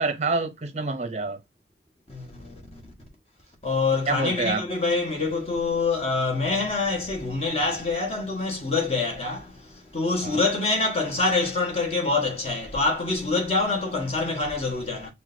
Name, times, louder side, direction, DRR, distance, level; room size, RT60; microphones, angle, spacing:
voice 1, 0.0-1.4 4.1-4.6 10.2-10.4, right 3 dB, 40° right, 0.6 m, -27 dB
voice 2, 2.1-2.8 3.6-15.1, left 3 dB, 35° left, 1.3 m, -26 dB
4.9 x 3.3 x 2.6 m
head